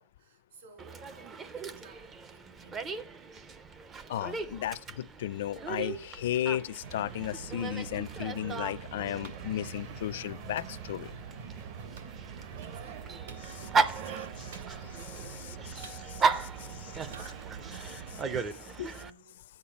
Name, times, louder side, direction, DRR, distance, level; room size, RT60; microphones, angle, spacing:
voice 1, 0.0-3.1 11.7-19.5, right 4 dB, 65° right, 3.3 m, -58 dB
Dog, 0.8-19.1, right 4 dB, 15° right, 0.4 m, -37 dB
voice 2, 4.1-11.1 15.7-16.0 18.8-18.9, left 12 dB, 55° left, 0.4 m, -34 dB
sound 1, 6.8-18.4, right 7 dB, 45° right, 0.8 m, -44 dB
Clapping, 9.2-9.4 10.6-10.8 12.0-12.1 13.3-13.5 14.5-15.0 15.8-16.4 17.1-17.3, right 5 dB, 85° right, 2.6 m, -50 dB
11.0 x 8.7 x 4.3 m
supercardioid pair, 175°, 0 cm